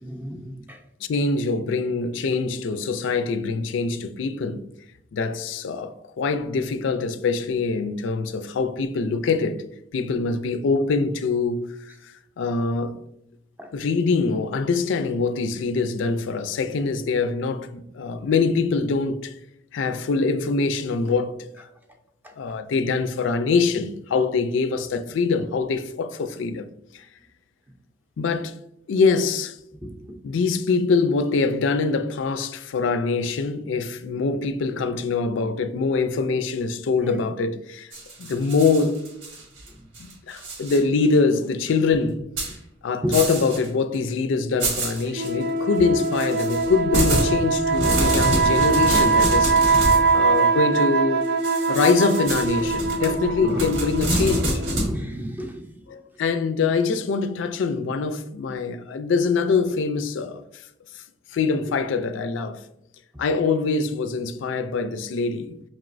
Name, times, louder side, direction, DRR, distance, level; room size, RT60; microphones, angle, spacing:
voice 1, 0.0-0.8 13.6-13.7 29.8-30.2 43.0-43.1 53.4-53.6 54.8-55.6, equal, 10° right, 0.5 m, -31 dB
voice 2, 1.1-4.6 5.1-9.6 9.9-11.8 12.0-13.0 13.7-19.3 19.7-21.7 22.4-26.7 26.9-27.1 28.2-28.5 28.9-29.6 30.2-37.9 38.2-39.0 40.3-42.2 42.8-51.3 51.6-54.6 55.9-60.4 60.9-61.0 61.3-62.6 63.2-65.6, left 4 dB, 90° left, 0.4 m, -24 dB
sound 1, 37.9-39.7 39.9-40.8 41.1-41.2 42.4-42.5 43.1-43.7 43.9-44.0 44.6-45.3 46.0-50.1 51.4-54.9, right 1 dB, 85° right, 1.3 m, -27 dB
sound 2, 45.1-54.8, right 4 dB, 60° right, 0.5 m, -22 dB
5.1 x 3.0 x 2.5 m
head